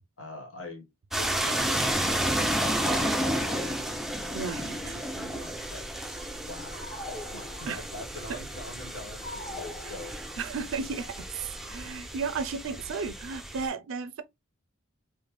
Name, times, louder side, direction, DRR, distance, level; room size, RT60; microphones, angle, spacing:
voice 1, 0.2-0.9 1.2-3.9 4.4-5.9 6.3-6.8 7.3-10.1, left 2 dB, 80° left, 1.2 m, -44 dB
sound 1, 1.1-13.7, right 1 dB, ahead, 0.3 m, -32 dB
voice 2, 4.3-4.8 7.7-7.8 9.8-9.9 10.4-14.2, right 5 dB, 75° right, 0.4 m, -34 dB
sound 2, 5.3-12.0, left 1 dB, 30° left, 0.9 m, -44 dB
3.5 x 2.1 x 3.0 m
head